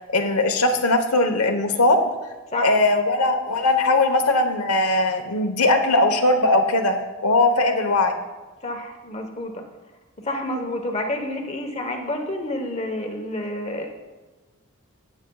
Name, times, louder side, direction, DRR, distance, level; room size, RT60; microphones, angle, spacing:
voice 1, 0.1-2.0 2.6-8.1, left 2 dB, 90° left, 6 dB, 1.1 m, -20 dB
voice 2, 8.6-9.6 10.2-13.9, left 1 dB, 30° left, 4 dB, 1.1 m, -29 dB
17.5 x 8.0 x 2.4 m, 1.2 s
head